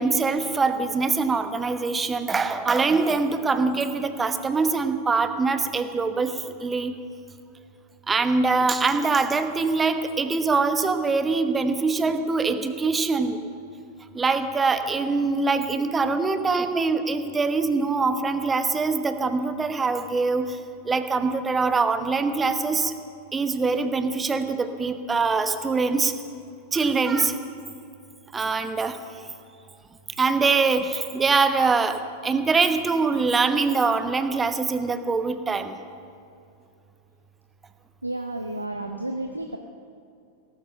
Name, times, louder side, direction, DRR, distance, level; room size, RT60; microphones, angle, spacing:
voice 1, 0.0-6.3 6.6-7.0 8.1-13.4 14.1-20.5 20.9-22.9 23.3-26.1 26.7-27.4 28.3-29.0 30.2-32.0 32.2-35.8, right 4 dB, 15° right, 9 dB, 1.1 m, -23 dB
voice 2, 38.0-39.6, right 1 dB, 85° right, 5 dB, 0.9 m, -32 dB
17.5 x 14.5 x 5.7 m, 2.6 s
figure-of-eight pair, 90°, 0 cm